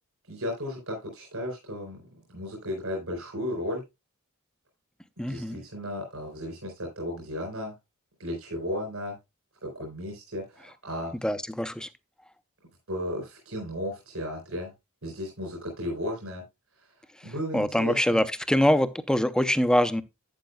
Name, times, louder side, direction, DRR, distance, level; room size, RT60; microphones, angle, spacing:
voice 1, 0.3-3.8 5.3-7.7 8.2-9.2 9.6-11.1 12.9-14.7 15.0-16.4 17.2-18.2, left 1 dB, 75° right, 4.2 m, -34 dB
voice 2, 5.2-5.6 11.2-11.9 17.2-20.0, left 1 dB, 5° left, 0.6 m, -24 dB
11.5 x 8.9 x 2.2 m
head